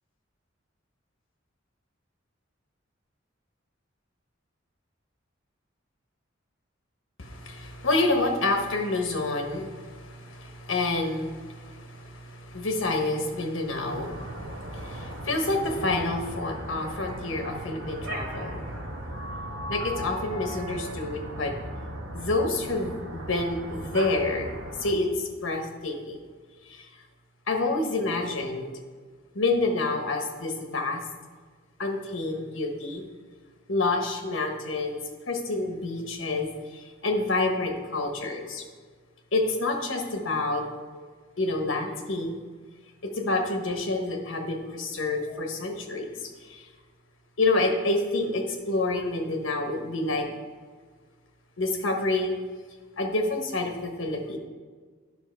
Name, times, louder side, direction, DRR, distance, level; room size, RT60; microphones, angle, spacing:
voice 1, 7.2-18.8 19.7-21.5 22.1-24.5 24.8-26.2 26.7-26.9 27.5-28.7 29.3-31.0 31.8-33.0 33.7-38.6 39.3-40.6 40.9-41.0 41.4-42.3 43.0-46.7 47.4-50.3 51.6-52.4 53.0-54.4, left 2 dB, 70° left, 4 dB, 1.2 m, -28 dB
sound 1, 13.8-24.9, right 1 dB, 70° right, 1.2 m, -37 dB
10.0 x 5.9 x 4.5 m, 1.5 s
head